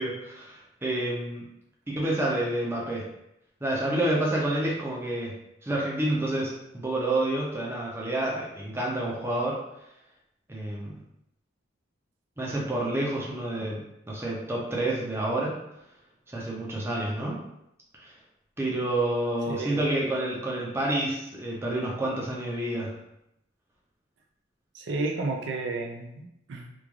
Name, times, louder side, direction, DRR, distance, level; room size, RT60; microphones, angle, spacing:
voice 1, 0.0-1.4 1.9-3.1 3.6-5.3 5.6-9.6 10.5-10.9 12.4-15.5 16.3-17.4 18.0-18.1 18.6-23.0, right 1 dB, 15° right, -3 dB, 0.5 m, -29 dB
voice 2, 19.5-19.8 24.7-26.7, right 3 dB, 75° right, 2 dB, 0.4 m, -32 dB
3.1 x 2.4 x 2.3 m, 0.83 s
head